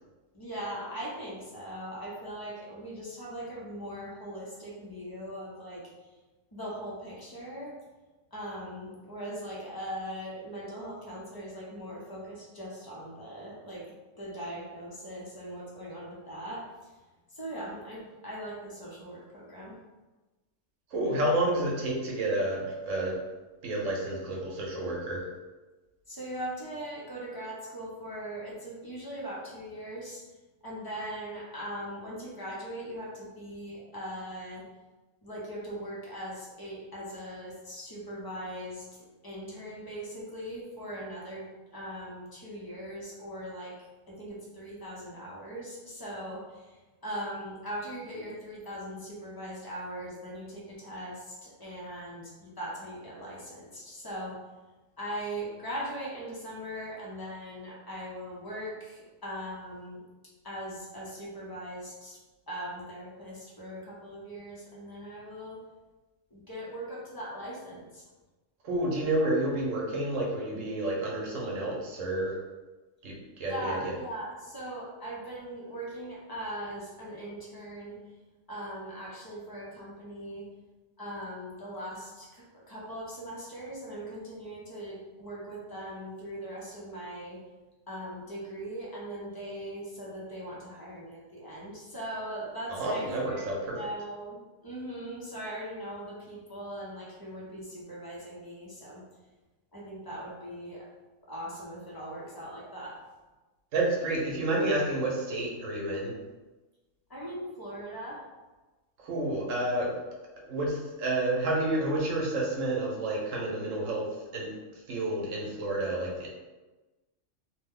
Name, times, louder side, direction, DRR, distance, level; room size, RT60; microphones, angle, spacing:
voice 1, 0.3-5.9 6.5-7.8 8.3-13.9 14.2-16.7 17.3-19.7 26.1-30.2 30.6-34.6 35.2-43.8 44.1-54.4 55.0-60.0 60.4-62.2 62.5-65.6 66.3-68.0 73.5-78.0 78.5-80.5 81.0-87.4 87.9-99.0 99.7-100.9 101.2-103.0 107.1-108.2, equal, 25° left, -5 dB, 0.6 m, -40 dB
voice 2, 20.9-23.2 23.6-25.3 68.6-72.4 73.0-73.9 92.7-93.8 103.7-106.1 109.0-109.9 110.5-114.5 114.9-116.3, right 1 dB, 75° right, -2 dB, 1.1 m, -30 dB
2.9 x 2.1 x 3.6 m, 1.2 s
omnidirectional pair, 1.4 m